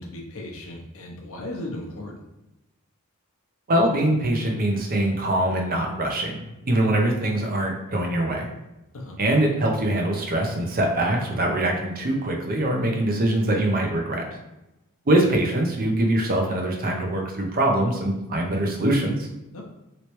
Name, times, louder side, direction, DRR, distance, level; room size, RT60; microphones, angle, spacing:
voice 1, 0.0-2.2 8.9-9.2 19.5-19.6, left 1 dB, 65° left, 0 dB, 0.7 m, -36 dB
voice 2, 3.7-8.5 9.2-14.2 15.1-19.2, right 1 dB, 40° right, 1 dB, 0.6 m, -23 dB
3.1 x 3.0 x 3.0 m, 0.95 s
head